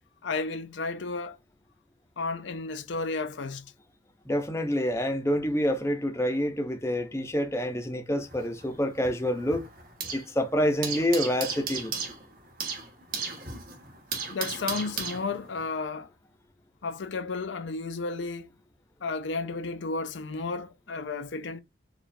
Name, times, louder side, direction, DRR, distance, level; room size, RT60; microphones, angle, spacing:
voice 1, 0.2-1.4 2.2-3.7 14.3-16.1 16.8-18.5 19.0-21.6, left 3 dB, 85° left, 0.5 m, -33 dB
voice 2, 4.3-9.7 10.1-11.9, equal, 15° left, 0.6 m, -27 dB
sound 1, 8.2-10.3 10.6-15.7, right 5 dB, 50° right, 1.3 m, -36 dB
4.8 x 2.4 x 2.6 m
head